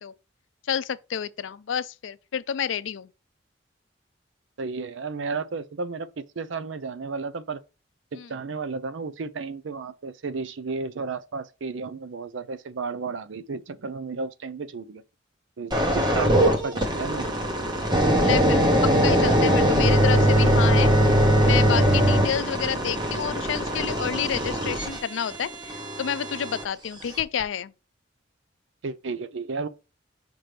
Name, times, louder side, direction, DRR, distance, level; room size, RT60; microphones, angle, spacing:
voice 1, 0.7-3.1 8.1-8.3 18.2-21.1 21.4-27.7, left 8 dB, 85° left, 0.4 m, -29 dB
voice 2, 4.6-7.6 8.1-15.0 15.6-17.4 28.8-29.7, right 4 dB, 80° right, 0.5 m, -33 dB
sound 1, 15.7-26.6 27.2-27.4, equal, 25° right, 1.0 m, -21 dB
5.8 x 5.2 x 3.3 m
head